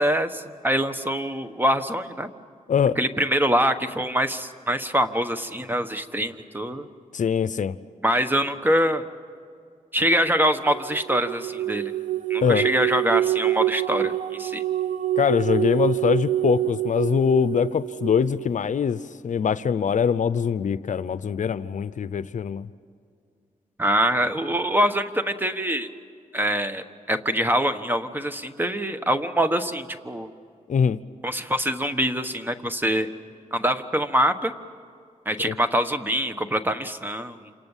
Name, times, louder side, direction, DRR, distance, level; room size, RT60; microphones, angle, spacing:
voice 1, 0.0-2.3 3.0-6.9 8.0-9.0 9.9-11.9 12.3-14.6 23.8-25.9 26.3-30.3 31.2-33.1 33.5-34.5 35.2-37.4, equal, 15° right, 9 dB, 1.3 m, -24 dB
voice 2, 7.1-7.8 12.4-12.7 15.2-22.7 30.7-31.0 35.5-35.6, left 7 dB, 65° left, 15 dB, 0.7 m, -23 dB
sound 1, 10.7-18.5, right 13 dB, 60° right, 0.7 m, -26 dB
28.0 x 27.0 x 7.4 m, 2.3 s
wide cardioid pair, 95°, 14 cm